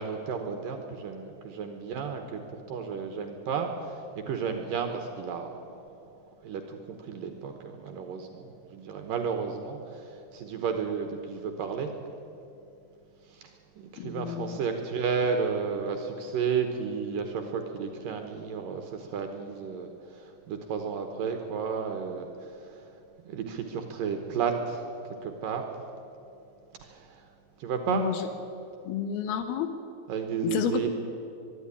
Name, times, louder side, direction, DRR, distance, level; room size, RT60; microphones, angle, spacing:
voice 1, 0.0-2.4 2.7-4.0 4.3-5.8 6.4-11.9 13.3-13.5 13.8-22.7 23.2-24.8 25.2-25.6 26.8-27.3 27.6-28.1 30.1-30.9, right 6 dB, 65° right, 5 dB, 2.4 m, -32 dB
voice 2, 14.0-14.6 27.9-28.3 28.8-29.7 30.4-30.9, left 9 dB, 75° left, 8 dB, 2.6 m, -30 dB
23.0 x 11.5 x 9.9 m, 2.7 s
omnidirectional pair, 5.0 m